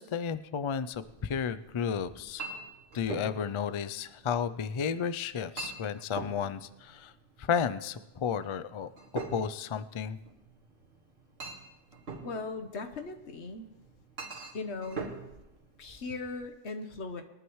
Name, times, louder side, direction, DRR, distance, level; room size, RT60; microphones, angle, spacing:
voice 1, 0.0-2.4 2.9-7.1 7.4-8.9 9.3-10.2, left 7 dB, 45° left, 12 dB, 0.4 m, -32 dB
Chink clink, 0.9-16.5, right 4 dB, 70° right, 2.0 m, -45 dB
voice 2, 12.2-13.7 14.5-15.0 15.8-17.2, left 3 dB, 85° left, 7 dB, 1.4 m, -38 dB
22.0 x 11.0 x 3.2 m, 0.97 s
omnidirectional pair, 1.1 m